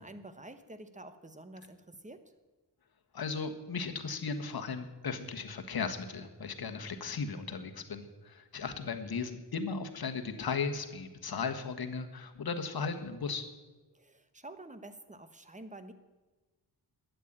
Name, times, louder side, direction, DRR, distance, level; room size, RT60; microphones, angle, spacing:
voice 1, 0.0-2.2 13.9-15.9, right 2 dB, 15° right, 10 dB, 1.0 m, -49 dB
voice 2, 3.1-13.5, left 5 dB, 60° left, 6 dB, 1.5 m, -36 dB
13.0 x 9.3 x 8.8 m, 1.2 s
wide cardioid pair, 150°, 42 cm